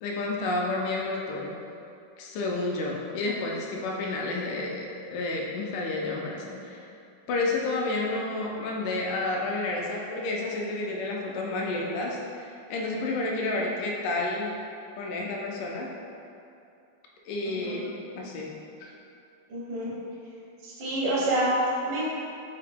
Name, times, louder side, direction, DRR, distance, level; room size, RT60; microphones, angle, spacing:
voice 1, 0.0-1.6 2.2-6.9 7.3-14.5 15.0-15.9 17.3-18.5 18.8-18.9 19.9-20.1, left 2 dB, 80° left, -2 dB, 2.1 m, -30 dB
voice 2, 17.4-17.8 18.2-18.3 19.5-19.9 20.6-21.5 21.8-22.0, right 2 dB, 85° right, -7 dB, 1.1 m, -28 dB
5.5 x 2.1 x 3.4 m, 2.6 s
omnidirectional pair, 3.9 m